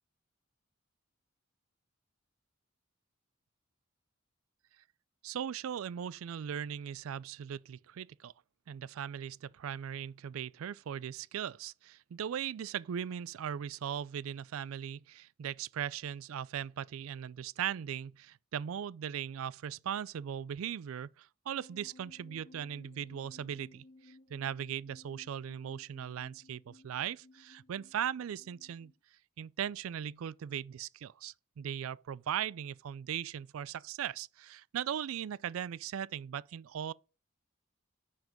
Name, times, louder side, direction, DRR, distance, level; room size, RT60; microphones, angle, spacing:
voice 1, 5.2-8.3 8.7-28.9 29.4-36.9, right 9 dB, 80° right, 0.4 m, -39 dB
sound 1, 21.5-28.9, left 2 dB, 35° left, 0.8 m, -59 dB
9.4 x 5.0 x 5.2 m
head